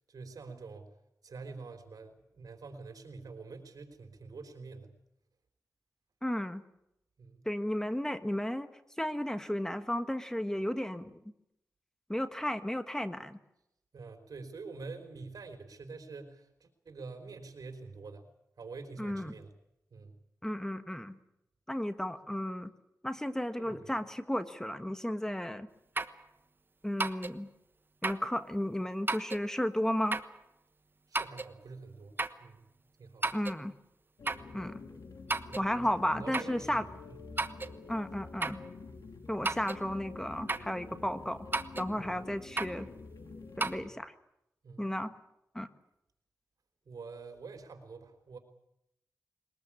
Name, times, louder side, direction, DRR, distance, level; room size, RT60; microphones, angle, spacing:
voice 1, 0.1-0.9 1.2-4.9 7.2-7.5 13.9-18.3 18.6-19.5 19.9-20.2 23.6-23.9 31.1-32.7 33.0-33.3 35.5-37.2 41.9-42.2 44.6-44.9 46.9-48.4, right 4 dB, 75° right, 7 dB, 3.8 m, -47 dB
voice 2, 6.2-6.6 7.4-8.7 9.0-11.2 12.1-13.4 19.0-19.3 20.4-21.2 21.7-22.7 23.0-25.7 26.8-27.5 28.0-30.2 33.3-33.7 34.5-34.8 35.6-36.8 37.9-38.6 39.3-41.5 41.8-42.9 43.6-44.1 44.8-45.1 45.5-45.7, equal, 10° left, 10 dB, 1.5 m, -33 dB
sound 1, 26.0-26.2 27.0-27.4 28.0-28.3 29.1-29.5 30.1-30.4 31.1-31.5 32.2-32.4 33.2-33.6 34.3-34.5 35.3-35.7 36.3-36.6 37.4-37.8 38.4-38.7 39.4-39.8 40.5-40.8 41.5-41.9 42.6-42.8 43.6-43.8, right 3 dB, 35° right, 1.2 m, -33 dB
sound 2, 34.2-43.9, left 4 dB, 75° left, 2.6 m, -48 dB
22.0 x 20.5 x 8.6 m, 0.81 s
cardioid pair, 65°, 6 cm